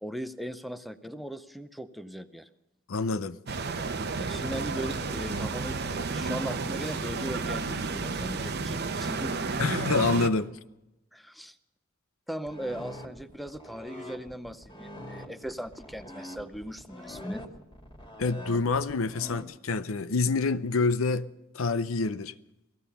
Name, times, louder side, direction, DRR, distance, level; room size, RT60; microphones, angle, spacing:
voice 1, 0.0-2.5 4.1-9.6 11.1-11.6 12.3-17.5, equal, ahead, 0.6 m, -38 dB
voice 2, 2.9-3.4 9.6-10.6 18.2-21.3 21.5-22.3, left 4 dB, 80° left, 0.6 m, -27 dB
sound 1, 3.5-10.3, right 4 dB, 55° right, 0.8 m, -32 dB
sound 2, 12.5-19.4, left 1 dB, 25° left, 1.9 m, -44 dB
17.5 x 14.0 x 5.6 m
head